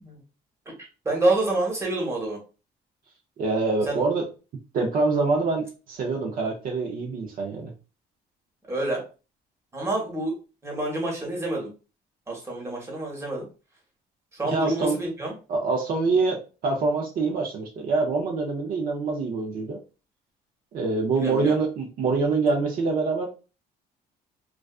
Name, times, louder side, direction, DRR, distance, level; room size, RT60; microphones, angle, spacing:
voice 1, 1.0-2.4 3.9-4.0 8.7-9.0 9.7-10.3 10.6-11.7 12.3-13.4 14.3-15.3 21.1-21.5, right 2 dB, 15° right, -2 dB, 1.0 m, -27 dB
voice 2, 3.4-4.2 4.7-7.7 14.5-15.0 15.5-19.8 20.7-23.3, right 3 dB, 55° right, 1 dB, 0.6 m, -25 dB
2.3 x 2.3 x 2.3 m, 0.33 s
cardioid pair, 110°, 17 cm